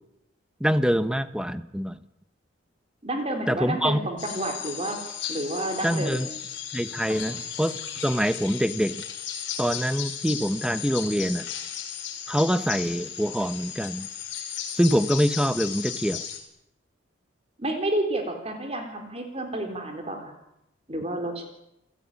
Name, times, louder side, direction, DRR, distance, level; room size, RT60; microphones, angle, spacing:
voice 1, 0.6-2.0 3.5-4.0 5.8-6.3 6.7-9.0 9.6-11.5 12.3-14.1 14.7-16.2, equal, 5° right, 12 dB, 1.1 m, -25 dB
voice 2, 3.0-5.0 5.3-6.3 7.1-7.2 17.6-20.3 20.9-21.5, right 1 dB, 30° right, 4 dB, 3.6 m, -30 dB
sound 1, 4.2-16.4, left 9 dB, 60° left, 5.5 m, -35 dB
29.0 x 17.0 x 9.9 m, 0.85 s
head